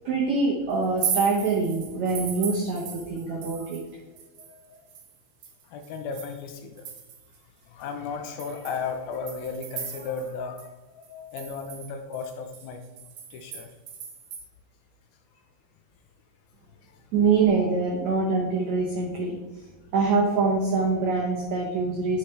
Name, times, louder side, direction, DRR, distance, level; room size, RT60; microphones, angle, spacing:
voice 1, 0.0-3.8 17.1-19.4 19.9-22.2, right 4 dB, 90° right, -1 dB, 1.6 m, -24 dB
sound 1, 0.8-3.9 4.2-7.4 7.8-7.9 8.4-10.3 10.6-10.7 11.0-14.4, right 7 dB, 70° right, 2.8 m, -37 dB
voice 2, 3.3-3.7 4.5-4.8 5.6-6.9 7.7-12.8 13.3-13.7 16.8-16.9 17.6-17.7, left 5 dB, 75° left, 5 dB, 2.3 m, -35 dB
9.9 x 6.3 x 3.3 m, 1.2 s
omnidirectional pair, 4.7 m